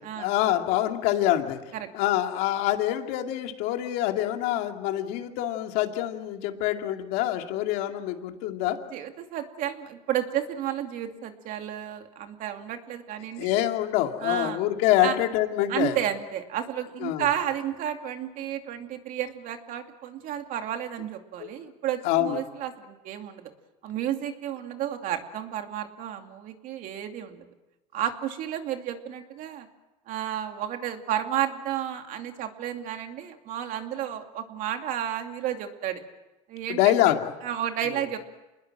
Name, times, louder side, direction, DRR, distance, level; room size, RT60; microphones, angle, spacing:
voice 1, 0.2-1.6 1.9-8.8 13.4-16.0 17.0-17.3 21.4-21.5 22.0-22.4 36.7-37.3, left 13 dB, 75° left, 4 dB, 2.5 m, -25 dB
voice 2, 8.9-13.6 14.2-14.6 15.0-15.1 15.7-23.5 23.8-27.5 27.9-29.7 30.1-36.0 36.5-36.8 37.4-38.2, right 10 dB, 60° right, 5 dB, 2.6 m, -32 dB
27.5 x 20.5 x 7.6 m, 1.1 s
supercardioid pair, 115°, 16 cm